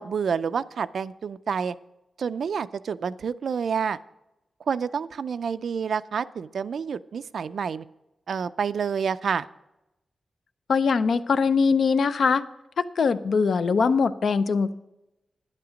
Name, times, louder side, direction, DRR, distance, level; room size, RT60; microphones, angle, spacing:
voice 1, 0.0-1.8 2.2-4.0 4.7-7.9 8.3-9.5, right 6 dB, 65° right, 12 dB, 0.4 m, -28 dB
voice 2, 10.7-12.4 12.8-14.7, left 5 dB, 60° left, 12 dB, 0.5 m, -22 dB
11.0 x 9.7 x 5.1 m, 0.92 s
wide cardioid pair, 150°, 0 cm